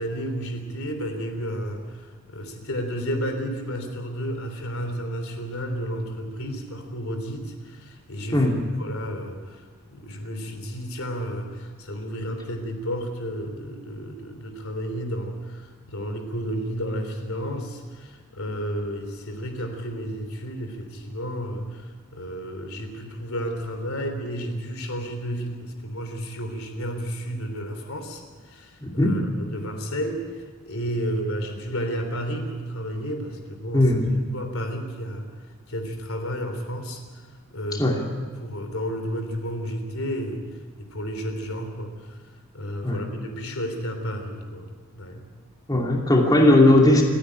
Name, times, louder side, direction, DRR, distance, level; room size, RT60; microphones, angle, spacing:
voice 1, 0.0-2.0 2.3-8.5 8.8-9.6 9.9-21.8 22.1-28.2 28.5-30.2 30.6-33.9 34.3-35.3 35.7-37.0 37.5-37.9 38.4-40.4 40.8-42.2 42.5-44.7 44.9-45.2, equal, 70° left, 5 dB, 3.4 m, -32 dB
voice 2, 28.8-29.1 33.7-34.2 37.7-38.0 42.8-43.0 45.7-47.0, left 1 dB, 20° left, -1 dB, 2.7 m, -18 dB
28.5 x 10.0 x 9.9 m, 1.5 s
head